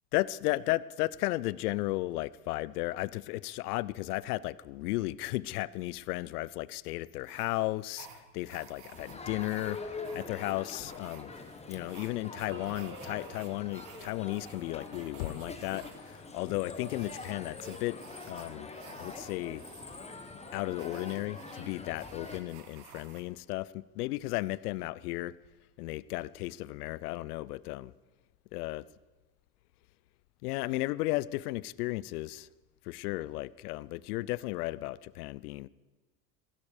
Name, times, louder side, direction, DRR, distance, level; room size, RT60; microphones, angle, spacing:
voice 1, 0.1-8.1 8.3-11.3 11.7-18.0 18.3-18.7 19.0-19.6 20.5-25.3 25.8-27.9 28.5-28.9 30.4-32.5 32.8-35.7, left 18 dB, 70° left, 0.6 m, -34 dB
sound 1, 7.2-23.2, right 8 dB, 60° right, 1.9 m, -55 dB
Crowd, 8.9-22.4, left 3 dB, 15° left, 1.3 m, -44 dB
sound 2, 12.3-13.7, right 2 dB, 25° right, 2.4 m, -47 dB
15.5 x 13.0 x 5.0 m
hypercardioid pair, 90°, 47 cm